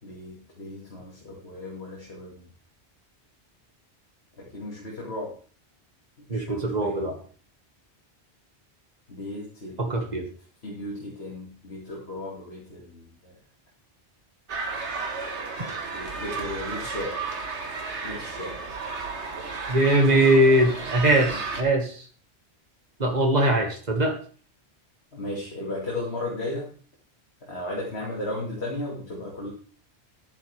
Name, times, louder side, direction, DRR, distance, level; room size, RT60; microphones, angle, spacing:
voice 1, 0.0-2.5 4.4-5.4 6.2-7.0 9.1-10.3 10.6-13.4 15.9-17.2 18.0-18.6 21.0-21.4 25.1-26.7 27.4-29.5, left 1 dB, 70° left, -3 dB, 2.7 m, -35 dB
voice 2, 6.3-7.1 9.8-10.3 19.7-22.0 23.0-24.2, right 1 dB, 40° right, 3 dB, 2.0 m, -21 dB
sound 1, 14.5-21.6, right 4 dB, 90° right, 1.8 m, -33 dB
11.5 x 10.5 x 3.5 m, 0.41 s
omnidirectional pair, 1.1 m